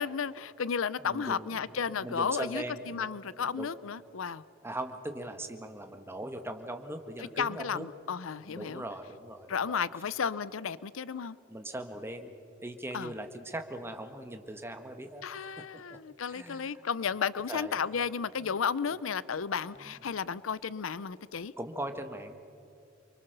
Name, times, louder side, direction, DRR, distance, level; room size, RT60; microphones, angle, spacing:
voice 1, 0.0-4.4 7.4-8.8 9.5-11.4 12.9-13.1 15.2-21.5, left 6 dB, 80° left, 18 dB, 0.6 m, -33 dB
voice 2, 1.0-3.1 3.4-3.7 4.6-7.9 8.4-9.8 11.5-12.3 12.6-15.4 15.9-16.0 16.3-16.8 17.5-18.0 18.4-18.5 19.7-20.0 21.6-22.4, right 1 dB, 10° right, 6 dB, 1.6 m, -40 dB
28.5 x 23.5 x 6.8 m, 2.6 s
head